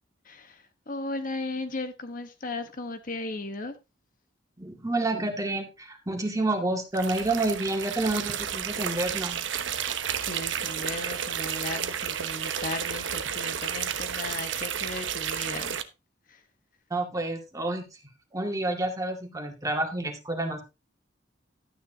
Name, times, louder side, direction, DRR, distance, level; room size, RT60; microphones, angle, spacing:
voice 1, 0.2-3.8 9.7-15.8 16.3-16.4, left 2 dB, 45° left, 1.1 m, -36 dB
voice 2, 4.6-9.4 16.9-17.9 18.3-20.6, right 2 dB, 20° right, 2.1 m, -29 dB
sound 1, 6.9-15.8, right 8 dB, 80° right, 0.9 m, -32 dB
12.0 x 9.5 x 2.8 m
head